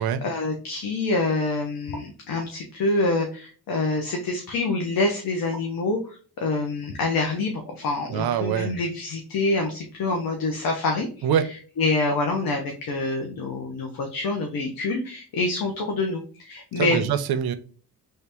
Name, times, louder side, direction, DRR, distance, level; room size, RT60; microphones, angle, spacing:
voice 1, 0.0-11.3 11.8-17.1, left 2 dB, 65° left, 2 dB, 0.8 m, -26 dB
voice 2, 8.1-8.7 11.2-11.5 16.8-17.5, right 9 dB, 80° right, 12 dB, 0.6 m, -24 dB
3.2 x 2.9 x 3.4 m, 0.40 s
cardioid pair, 120°, 37 cm